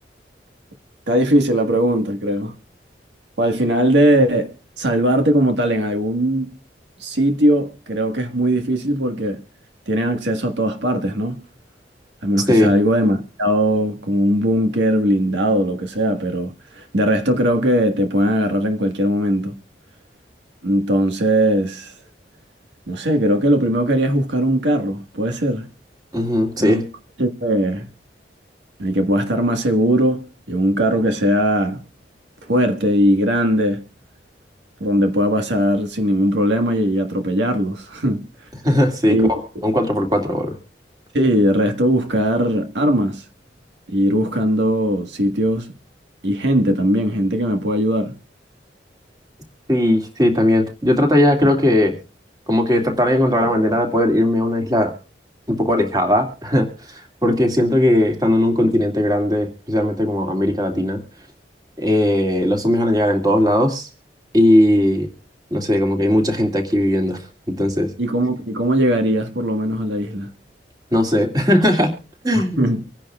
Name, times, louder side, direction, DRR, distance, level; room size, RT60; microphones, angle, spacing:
voice 1, 1.1-2.5 3.4-6.5 7.0-9.4 9.9-11.4 12.2-19.6 20.6-21.9 22.9-25.7 26.6-26.8 27.2-27.9 28.8-31.8 32.5-33.8 34.8-38.3 39.1-39.3 39.5-39.7 41.1-43.2 43.9-45.7 46.2-48.1 68.0-70.3 72.3-72.8, equal, 90° right, 1.6 m, -19 dB
voice 2, 26.1-26.8 38.6-39.2 39.6-40.5 49.7-51.9 52.5-54.9 55.5-56.7 57.2-61.0 61.8-63.9 64.3-65.1 65.5-67.2 67.5-67.9 70.9-71.9 72.2-72.6, left 1 dB, 20° right, 2.4 m, -18 dB
25.5 x 10.5 x 2.4 m
head